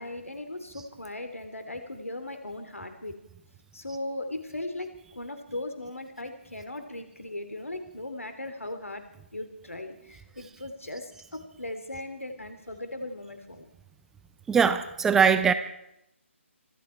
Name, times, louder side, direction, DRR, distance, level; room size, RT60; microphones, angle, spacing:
voice 1, 0.0-3.2 3.7-9.0 9.3-13.7, left 1 dB, 85° left, 8 dB, 3.0 m, -38 dB
voice 2, 14.5-15.5, right 6 dB, 5° right, 10 dB, 0.5 m, -21 dB
25.0 x 13.0 x 4.5 m, 0.81 s
figure-of-eight pair, 150°, 7 cm